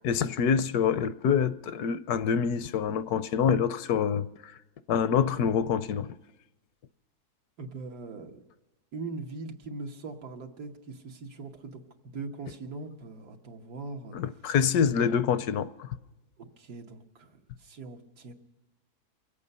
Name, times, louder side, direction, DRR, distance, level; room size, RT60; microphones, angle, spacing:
voice 1, 0.0-4.3 4.9-6.1 14.1-15.9, left 7 dB, 80° left, 1.1 m, -26 dB
voice 2, 7.6-8.4 8.9-14.4 15.1-15.2 16.4-18.3, right 3 dB, 90° right, 1.8 m, -41 dB
23.5 x 8.5 x 5.3 m
omnidirectional pair, 1.7 m